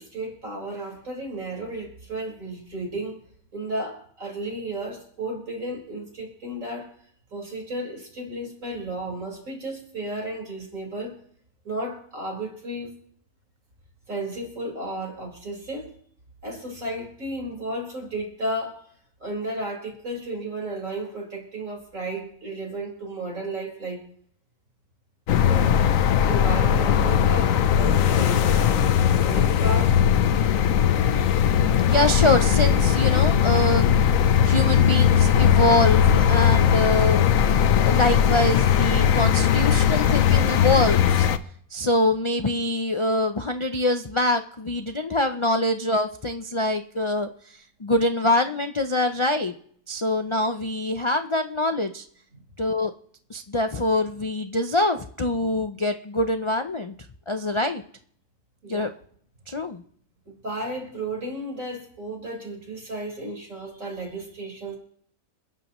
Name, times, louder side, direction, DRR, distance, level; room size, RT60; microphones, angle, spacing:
voice 1, 0.0-3.2 3.5-6.9 7.3-11.2 11.6-12.9 14.1-15.9 16.4-18.9 19.2-24.1 25.4-25.8 26.3-28.9 29.2-30.0 58.6-58.9 60.4-64.8, right 1 dB, 60° right, -1 dB, 5.3 m, -33 dB
sound 1, 25.3-41.4, left 9 dB, 70° left, 1.1 m, -19 dB
voice 2, 31.8-33.9 34.4-37.3 37.8-41.3 41.7-49.5 49.9-52.0 52.6-52.9 53.3-56.9 57.3-57.8 58.7-58.9 59.5-59.8, left 1 dB, 50° left, 7 dB, 0.3 m, -24 dB
28.5 x 11.0 x 3.1 m, 0.62 s
omnidirectional pair, 1.6 m